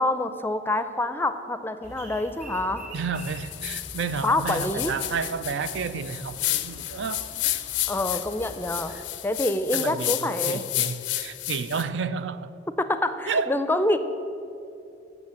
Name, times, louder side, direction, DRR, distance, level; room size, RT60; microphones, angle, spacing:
voice 1, 0.0-2.9 4.2-5.0 7.9-9.0 9.2-10.6 12.8-14.0, left 1 dB, 10° left, 0.4 m, -26 dB
sound 1, 1.8-9.0, right 1 dB, 35° right, 2.1 m, -45 dB
voice 2, 2.9-7.6 8.9-9.0 9.7-12.5 13.3-13.5, right 5 dB, 85° right, 0.4 m, -31 dB
sound 2, 3.2-11.8, left 15 dB, 85° left, 0.4 m, -31 dB
9.2 x 6.6 x 7.0 m
head